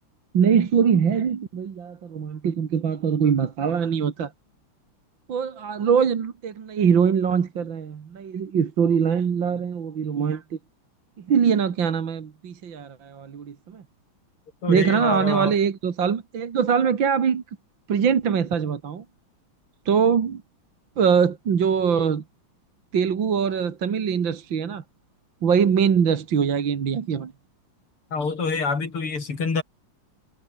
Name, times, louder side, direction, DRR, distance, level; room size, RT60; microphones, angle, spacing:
voice 1, 0.3-4.3 5.3-10.4 11.3-13.8 14.7-17.4 17.9-19.0 19.9-20.4 21.0-22.2 22.9-24.8 25.4-27.3, right 7 dB, 60° right, 2.6 m, -22 dB
voice 2, 14.6-15.5 28.1-29.6, left 4 dB, 90° left, 5.0 m, -26 dB
omnidirectional pair, 2.4 m